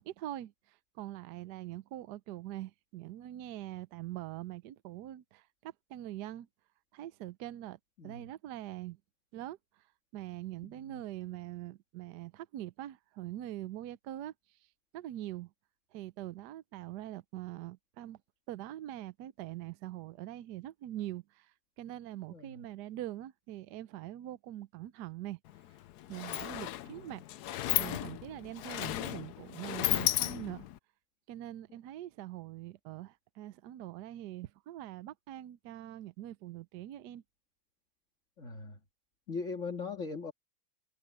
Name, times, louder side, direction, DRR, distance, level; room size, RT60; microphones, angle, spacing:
voice 1, 0.0-6.5 6.9-9.0 9.3-9.8 10.1-14.3 14.9-15.5 15.9-18.2 18.5-25.4 26.1-27.2 27.8-30.7 31.3-37.2, right 14 dB, 70° right, 1.2 m, -43 dB
voice 2, 10.6-11.0 22.3-22.7 38.4-38.8 39.3-40.3, left 4 dB, 40° left, 2.3 m, -40 dB
Sliding door, 25.5-25.6 25.9-30.8, left 13 dB, 70° left, 1.1 m, -34 dB
omnidirectional pair, 2.0 m